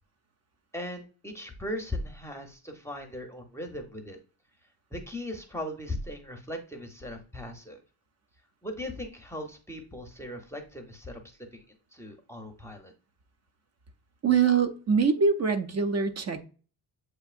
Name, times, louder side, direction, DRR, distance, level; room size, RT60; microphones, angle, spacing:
voice 1, 0.7-4.2 4.9-7.8 8.6-11.6 11.9-12.9, left 1 dB, 5° left, 0.6 m, -38 dB
voice 2, 14.2-16.4, right 6 dB, 35° right, 0.5 m, -24 dB
7.7 x 2.7 x 2.4 m
cardioid pair, 135°, 47 cm